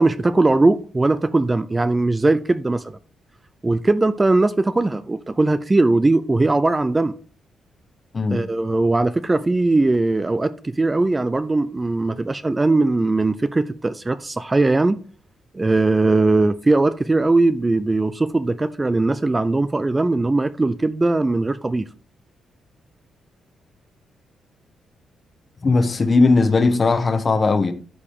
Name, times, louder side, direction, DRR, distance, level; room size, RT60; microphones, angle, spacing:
voice 1, 0.0-3.0 3.6-7.1 8.3-15.0 15.5-21.9, right 2 dB, 15° right, 0.3 m, -19 dB
voice 2, 25.6-27.7, left 3 dB, 30° left, 1.0 m, -18 dB
13.0 x 4.8 x 3.6 m
cardioid pair, 140°, 0 cm